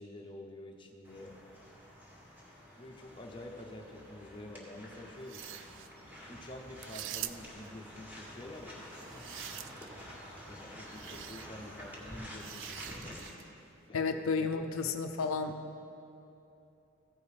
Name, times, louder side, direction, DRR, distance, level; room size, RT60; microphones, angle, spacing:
voice 1, 0.0-1.3 2.8-5.6 6.3-8.9 10.5-13.2 13.9-14.7, left 1 dB, 25° left, 1 dB, 0.8 m, -48 dB
sound 1, 1.0-13.3, equal, 10° right, 1.8 m, -49 dB
sound 2, 5.2-5.9 6.8-7.7 8.8-10.0 10.9-11.5 12.4-13.5, right 12 dB, 65° right, 0.3 m, -44 dB
voice 2, 13.9-15.5, left 4 dB, 80° left, 6 dB, 0.5 m, -32 dB
15.0 x 5.3 x 4.9 m, 2.8 s
head